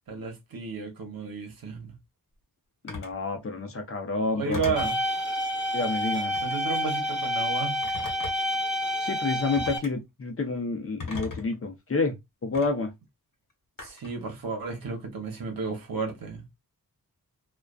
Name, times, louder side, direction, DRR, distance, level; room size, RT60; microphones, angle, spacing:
voice 1, 0.1-1.9 4.3-5.0 6.4-7.8 13.8-16.4, right 5 dB, 70° right, 0.9 m, -33 dB
voice 2, 2.8-4.7 5.7-6.4 9.0-12.9, left 3 dB, 40° left, 0.6 m, -29 dB
Telephone, 2.9-3.2 4.5-5.0 6.3-6.6 7.8-8.6 9.5-9.9 11.0-11.6 12.5-12.7 13.8-14.2, left 4 dB, 60° left, 1.1 m, -37 dB
sound 1, 4.8-9.8, equal, 5° right, 0.8 m, -29 dB
2.4 x 2.3 x 2.3 m
cardioid pair, 70°, 36 cm